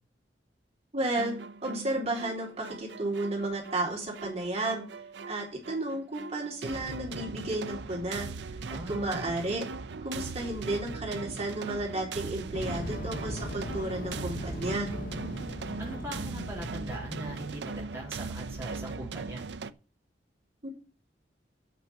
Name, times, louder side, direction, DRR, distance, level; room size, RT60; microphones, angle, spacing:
voice 1, 0.9-1.4 1.6-4.8 5.3-8.3 8.9-9.7 10.0-14.9 20.6-20.7, right 2 dB, 40° right, -2 dB, 3.9 m, -32 dB
sound 1, 1.2-19.7, right 4 dB, 75° right, 0.6 m, -39 dB
voice 2, 8.6-9.3 15.8-19.4, right 1 dB, 15° right, -4 dB, 3.7 m, -40 dB
sound 2, 12.5-17.9, left 1 dB, 50° left, 1.2 m, -39 dB
8.2 x 6.8 x 7.5 m, 0.37 s
head